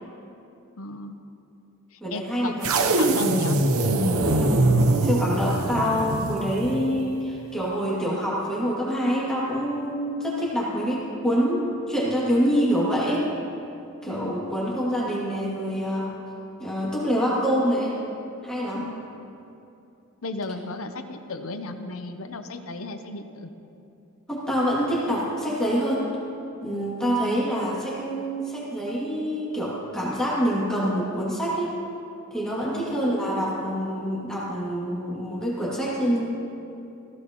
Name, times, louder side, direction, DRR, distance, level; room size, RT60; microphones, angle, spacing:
voice 1, 0.8-1.2 1.9-3.6 14.1-14.4 18.7-19.0 20.2-23.5 32.7-33.0, left 3 dB, 65° left, 8 dB, 0.8 m, -35 dB
voice 2, 2.0-2.7 4.1-4.7 5.0-13.3 14.0-16.1 16.6-18.0 18.4-18.9 24.3-26.1 26.6-31.7 32.3-36.3, equal, 5° left, -8 dB, 2.5 m, -26 dB
sound 1, 2.6-6.9, right 2 dB, 65° right, 0.9 m, -22 dB
17.5 x 15.5 x 3.1 m, 2.8 s
head